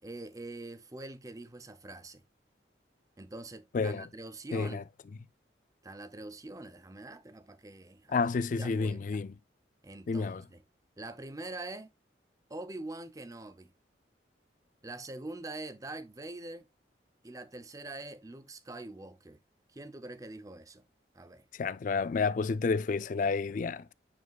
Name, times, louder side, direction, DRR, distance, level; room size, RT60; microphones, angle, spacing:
voice 1, 0.0-2.2 3.2-4.8 5.8-8.3 8.6-9.2 9.8-10.6 11.0-11.9 12.5-13.7 14.8-16.7 17.2-19.4 19.7-20.8 21.1-21.4, right 2 dB, 20° right, 0.6 m, -44 dB
voice 2, 4.5-4.8 8.1-9.3 10.1-10.4 21.5-23.9, left 4 dB, 45° left, 0.3 m, -30 dB
9.4 x 4.5 x 2.3 m
head